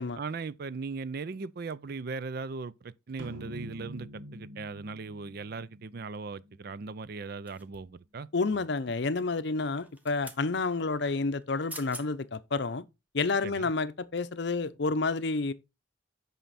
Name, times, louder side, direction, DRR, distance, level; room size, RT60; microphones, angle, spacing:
voice 1, 0.2-8.6 13.4-13.7, right 4 dB, 50° right, 0.4 m, -38 dB
sound 1, 3.2-6.7, equal, 80° right, 1.7 m, -46 dB
sound 2, 7.5-8.0 9.8-10.4 11.4-11.5 11.7-12.1 12.6-12.8, right 1 dB, 10° right, 1.1 m, -45 dB
voice 2, 8.3-12.8 13.1-15.5, left 3 dB, 60° left, 0.6 m, -29 dB
9.2 x 5.7 x 4.1 m
head